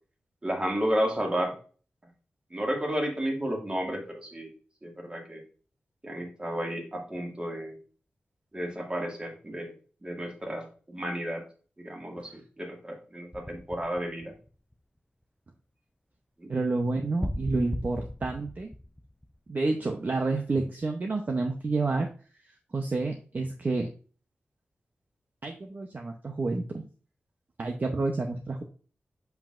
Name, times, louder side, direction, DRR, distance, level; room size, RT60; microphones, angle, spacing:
voice 1, 0.4-1.5 2.5-4.5 4.8-5.4 6.0-7.8 8.5-9.7 10.0-11.4 11.8-14.3 16.4-16.5, equal, 25° right, 1 dB, 2.0 m, -32 dB
sound 1, 13.3-14.7 17.2-19.7, equal, 5° left, 0.4 m, -37 dB
voice 2, 16.5-18.7 19.5-22.1 22.7-23.9 25.4-26.8 27.6-28.6, right 3 dB, 45° right, 3 dB, 0.7 m, -29 dB
7.0 x 5.7 x 2.5 m, 0.39 s
wide cardioid pair, 85°, 4 cm